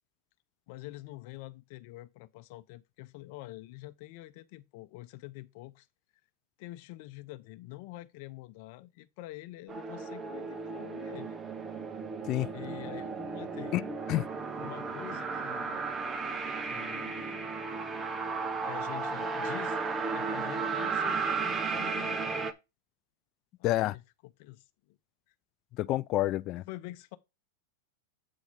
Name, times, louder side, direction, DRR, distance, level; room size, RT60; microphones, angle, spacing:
voice 1, 0.7-5.9 6.6-11.4 12.4-13.8 14.6-15.8 16.6-17.5 18.6-19.8 20.1-22.5 23.6-25.0 26.7-27.2, left 17 dB, 50° left, 0.8 m, -46 dB
sound 1, 9.7-22.5, right 4 dB, 15° right, 0.8 m, -34 dB
voice 2, 13.7-14.3 23.6-24.0 25.8-26.6, left 15 dB, 35° left, 0.3 m, -29 dB
8.6 x 3.9 x 4.8 m
supercardioid pair, 135°, 0 cm